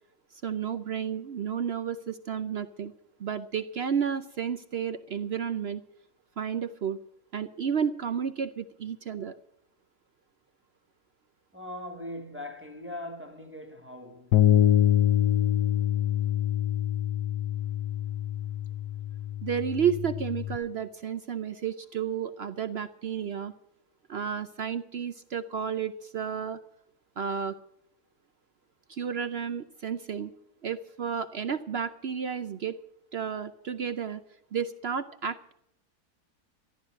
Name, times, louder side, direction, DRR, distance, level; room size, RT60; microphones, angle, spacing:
voice 1, 0.3-2.9 3.2-5.8 6.4-7.0 7.3-9.3 19.4-23.5 24.1-26.6 27.2-27.6 28.9-30.3 30.6-32.8 33.1-34.2 34.5-35.5, right 7 dB, 60° right, 0.6 m, -32 dB
voice 2, 11.5-14.4, left 1 dB, 10° right, 1.5 m, -40 dB
Bass guitar, 14.3-20.6, left 11 dB, 75° left, 1.2 m, -25 dB
14.0 x 11.5 x 6.4 m
omnidirectional pair, 1.8 m